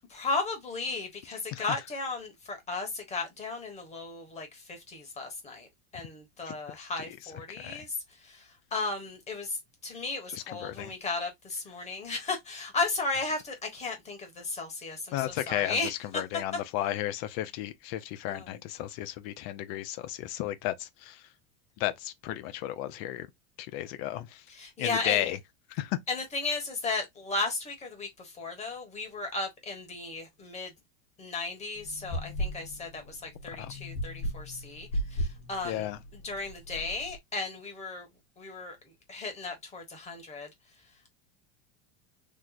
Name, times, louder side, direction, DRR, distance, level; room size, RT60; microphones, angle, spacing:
voice 1, 0.1-5.7 5.9-7.9 8.2-15.9 18.3-18.5 24.6-25.3 26.1-30.7 31.2-35.9 36.2-38.1 38.4-38.8 39.1-40.5, left 3 dB, 25° left, 1.2 m, -35 dB
voice 2, 6.5-7.0 7.6-7.9 10.3-10.9 15.1-21.3 21.8-23.3 23.6-24.4 24.8-25.4 25.7-26.0 33.6-33.7 35.6-36.0, left 14 dB, 60° left, 0.6 m, -34 dB
sound 1, 31.8-37.2, equal, 75° left, 1.0 m, -36 dB
3.1 x 2.1 x 3.8 m
supercardioid pair, 140°, 29 cm